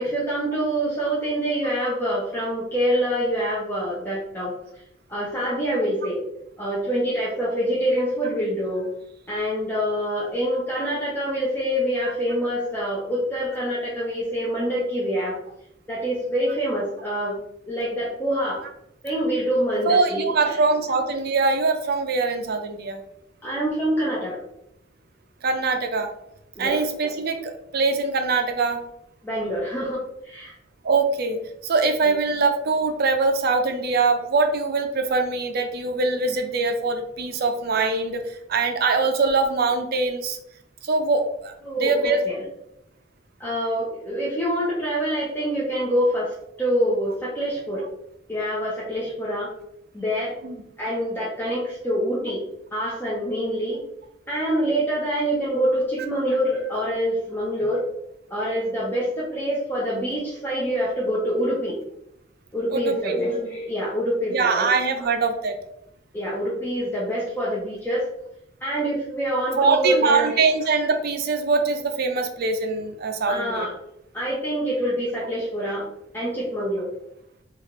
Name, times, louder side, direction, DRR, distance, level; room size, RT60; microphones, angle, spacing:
voice 1, 0.0-4.5 5.1-6.2 6.6-8.9 9.3-15.4 15.9-17.4 17.7-18.6 19.0-20.6 23.4-24.4 26.6-26.8 29.2-30.5 41.6-42.4 43.4-47.8 48.3-49.5 49.9-50.4 50.8-52.4 52.7-53.8 54.3-57.8 58.3-61.8 62.5-64.7 66.1-68.0 68.6-70.4 73.3-73.7 74.1-75.8 76.1-76.9, equal, 10° left, -7 dB, 0.6 m, -25 dB
voice 2, 19.8-23.0 25.4-26.1 26.6-28.8 30.8-40.4 40.8-41.5 41.8-42.2 50.4-50.6 62.7-63.2 64.3-65.6 69.6-73.7, right 4 dB, 55° right, 6 dB, 0.4 m, -23 dB
3.2 x 2.4 x 3.0 m, 0.78 s
head